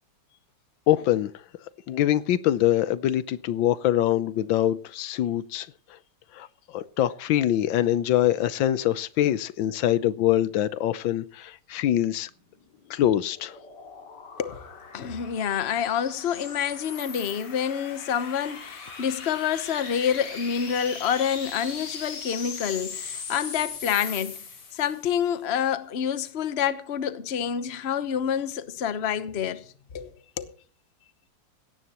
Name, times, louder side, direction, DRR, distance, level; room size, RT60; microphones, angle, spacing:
voice 1, 0.9-1.3 1.9-5.7 6.3-12.3 12.9-13.6, left 12 dB, 80° left, 1.5 m, -24 dB
sound 1, 12.5-25.2, left 5 dB, 65° left, 2.9 m, -39 dB
voice 2, 14.4-24.4 24.7-30.1 30.4-30.5, left 8 dB, 40° left, 1.0 m, -28 dB
17.5 x 14.0 x 3.0 m
omnidirectional pair, 2.1 m